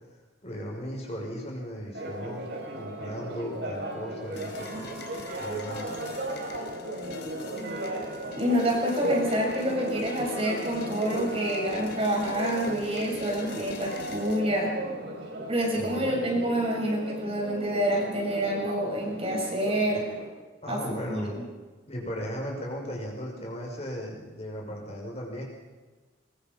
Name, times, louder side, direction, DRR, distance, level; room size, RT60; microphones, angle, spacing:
voice 1, 0.4-5.0 5.4-5.9 15.7-16.1 20.6-21.4 21.9-25.4, equal, 35° left, -1 dB, 6.3 m, -36 dB
Church bell, 1.9-20.3, right 1 dB, 60° right, 6.4 m, -35 dB
sound 1, 4.3-14.4, left 4 dB, 55° left, 3.9 m, -46 dB
voice 2, 8.3-14.8 15.5-20.1 20.7-21.4, equal, 30° right, -1 dB, 6.6 m, -28 dB
23.5 x 22.5 x 5.5 m, 1.3 s
head